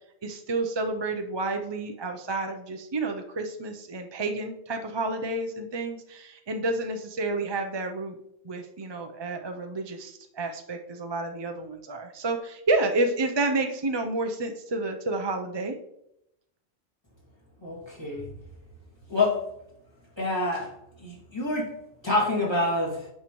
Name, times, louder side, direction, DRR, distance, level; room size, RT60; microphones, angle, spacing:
voice 1, 0.2-8.2 8.4-15.7, right 2 dB, 35° right, 5 dB, 0.4 m, -30 dB
voice 2, 17.6-18.3 19.1-19.5 20.2-20.7 21.0-23.1, left 2 dB, 25° left, -4 dB, 2.2 m, -27 dB
9.0 x 5.7 x 3.0 m, 0.80 s
omnidirectional pair, 1.1 m